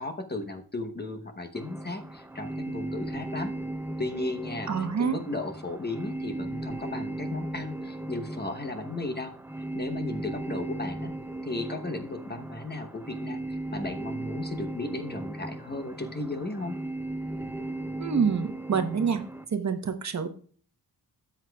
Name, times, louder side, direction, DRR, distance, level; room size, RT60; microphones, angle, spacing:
voice 1, 0.0-3.5 4.0-4.7 5.0-9.3 9.7-11.1 11.4-16.8, left 2 dB, 25° left, 6 dB, 0.9 m, -35 dB
sound 1, 1.5-19.4, right 1 dB, 5° right, 0.5 m, -37 dB
voice 2, 4.7-5.2 18.0-19.2 19.5-20.3, right 6 dB, 45° right, 7 dB, 1.0 m, -26 dB
13.0 x 8.1 x 2.3 m, 0.42 s
wide cardioid pair, 125°, 39 cm